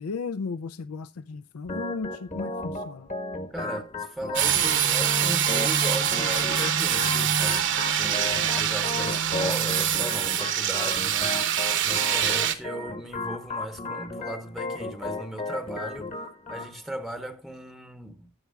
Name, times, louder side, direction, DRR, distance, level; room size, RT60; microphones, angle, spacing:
voice 1, 0.0-3.1, left 4 dB, 85° left, 0.5 m, -35 dB
Organ, 1.7-16.7, left 2 dB, 35° left, 1.2 m, -35 dB
voice 2, 3.5-11.4 11.8-16.1 16.5-18.4, right 1 dB, ahead, 0.8 m, -37 dB
sound 1, 4.3-12.5, right 9 dB, 60° right, 1.0 m, -24 dB
19.5 x 6.8 x 2.3 m
head